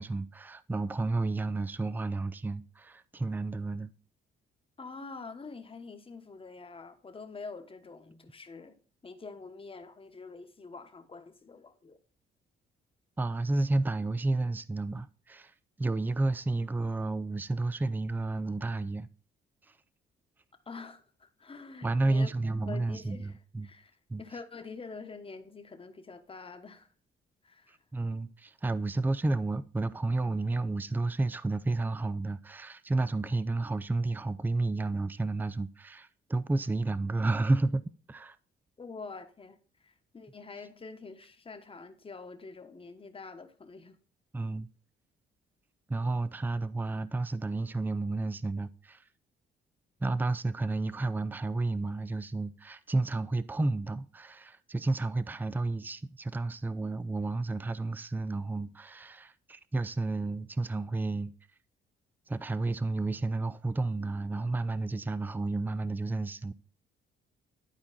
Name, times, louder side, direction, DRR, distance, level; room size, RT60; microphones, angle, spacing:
voice 1, 0.0-3.9 13.2-19.1 19.7-19.8 21.8-23.7 24.1-24.2 27.7-37.8 38.1-38.4 44.3-44.7 45.9-49.0 50.0-61.3 62.3-66.5, right 2 dB, 10° right, 0.4 m, -31 dB
voice 2, 4.8-8.8 9.0-12.0 20.7-22.3 22.6-23.9 24.2-26.9 27.4-27.8 38.8-44.0, left 4 dB, 25° left, 1.2 m, -46 dB
11.5 x 4.4 x 4.1 m
cardioid pair, 90°, 20 cm